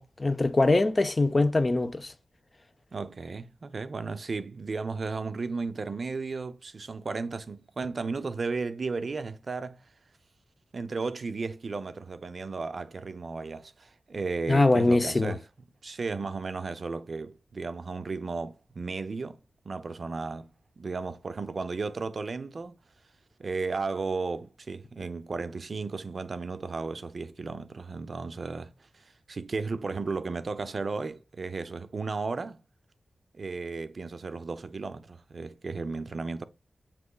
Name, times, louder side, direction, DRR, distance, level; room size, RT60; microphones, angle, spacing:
voice 1, 0.0-2.1 14.5-15.3, left 2 dB, 30° left, 0.4 m, -23 dB
voice 2, 2.9-9.9 10.7-15.5 15.8-20.5 20.8-22.8 23.4-32.6 33.3-36.4, right 4 dB, 50° right, 0.4 m, -34 dB
7.3 x 3.0 x 2.2 m
wide cardioid pair, 120°, 0 cm